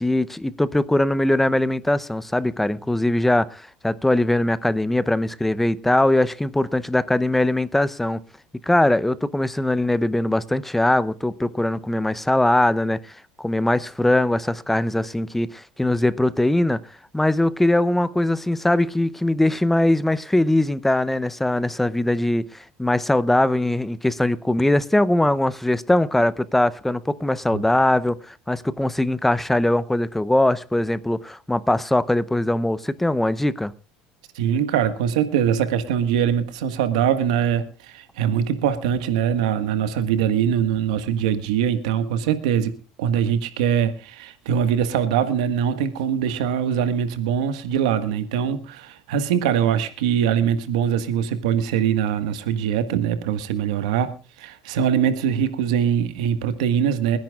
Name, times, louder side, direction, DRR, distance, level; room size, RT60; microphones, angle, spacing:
voice 1, 0.0-8.2 8.6-16.8 17.1-33.7, left 1 dB, 5° left, 0.7 m, -21 dB
voice 2, 34.3-57.2, right 8 dB, 90° right, 1.6 m, -22 dB
29.0 x 10.5 x 2.4 m
supercardioid pair, 110°, 3 cm